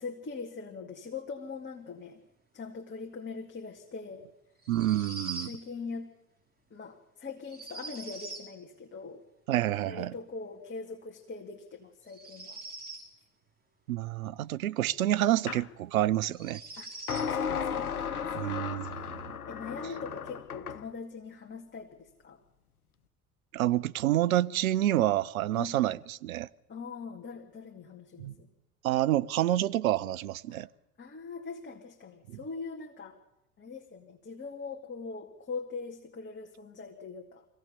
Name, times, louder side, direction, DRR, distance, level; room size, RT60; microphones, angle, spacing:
voice 1, 0.0-2.2 2.5-4.3 5.4-6.1 6.7-9.2 9.8-12.6 16.8-16.9 17.2-18.6 19.5-22.4 25.5-25.8 26.7-28.5 30.5-30.6 31.0-33.2 33.6-37.5, left 4 dB, 25° left, 2.3 m, -42 dB
sound 1, 4.6-5.6 7.5-8.5 12.1-13.1 15.3-15.4 16.3-17.3, right 3 dB, 20° right, 5.2 m, -42 dB
voice 2, 4.7-5.5 9.5-10.1 13.9-16.6 18.4-19.2 23.5-26.5 28.2-28.3 28.8-30.7 32.3-32.4, right 13 dB, 70° right, 0.7 m, -28 dB
sound 2, 15.5-15.7 17.1-20.8, left 7 dB, 85° left, 0.9 m, -35 dB
24.5 x 17.0 x 6.9 m
figure-of-eight pair, 70°, 43 cm